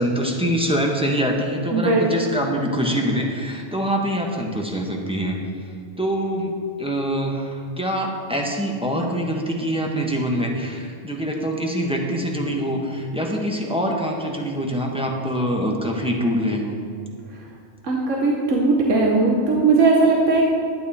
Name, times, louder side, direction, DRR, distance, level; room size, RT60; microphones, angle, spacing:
voice 1, 0.0-5.4 6.0-6.5 6.8-16.8, equal, 5° right, 0 dB, 1.0 m, -24 dB
voice 2, 1.7-2.0 17.8-20.5, right 3 dB, 80° right, -2 dB, 1.5 m, -18 dB
11.5 x 9.3 x 4.2 m, 2.4 s
omnidirectional pair, 1.3 m